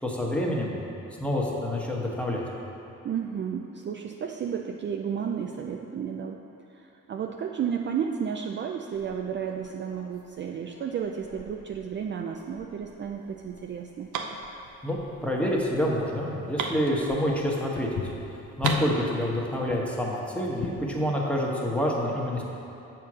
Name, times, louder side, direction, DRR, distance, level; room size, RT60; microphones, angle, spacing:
voice 1, 0.0-0.7 1.2-2.4 14.8-18.1 18.6-22.4, equal, 5° left, -3 dB, 1.2 m, -27 dB
voice 2, 3.0-6.4 6.7-14.1, right 7 dB, 40° right, 2 dB, 0.4 m, -32 dB
sound 1, 8.9-21.1, left 4 dB, 50° left, 0.8 m, -39 dB
sound 2, 13.2-17.7 18.0-18.1 18.3-19.6, right 5 dB, 80° right, 0.7 m, -36 dB
7.2 x 4.6 x 6.2 m, 2.9 s
cardioid pair, 90°, 30 cm